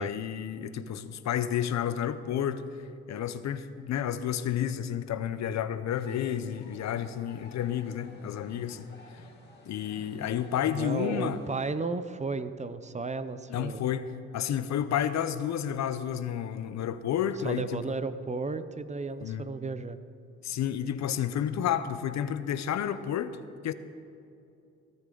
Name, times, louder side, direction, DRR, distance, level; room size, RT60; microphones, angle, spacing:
voice 1, 0.0-2.6 3.1-8.9 9.1-9.2 9.7-11.4 13.5-14.1 14.3-17.8 19.2-19.4 20.4-23.4 23.6-23.7, left 9 dB, 65° left, 12 dB, 0.7 m, -31 dB
sound 1, 5.9-11.7, left 3 dB, 35° left, 2.7 m, -53 dB
voice 2, 10.7-13.8 17.4-20.0, right 4 dB, 25° right, 12 dB, 0.5 m, -34 dB
17.0 x 13.0 x 3.9 m, 2.6 s
cardioid pair, 95°, 30 cm